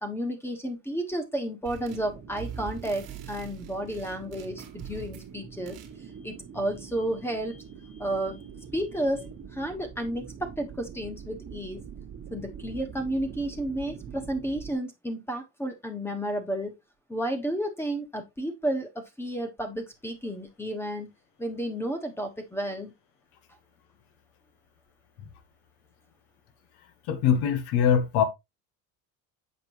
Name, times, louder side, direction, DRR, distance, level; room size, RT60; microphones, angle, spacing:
voice 1, 0.0-5.8 6.2-7.6 7.9-11.8 12.3-16.8 17.1-21.1 21.4-22.9, right 1 dB, 5° left, 1.2 m, -32 dB
sound 1, 1.6-2.1 2.4-5.3 5.7-5.9, right 7 dB, 50° right, 1.5 m, -42 dB
sound 2, 1.9-14.7, right 7 dB, 35° right, 1.3 m, -44 dB
voice 2, 27.1-28.2, left 8 dB, 85° left, 1.4 m, -22 dB
7.4 x 5.2 x 3.0 m
cardioid pair, 150°, 38 cm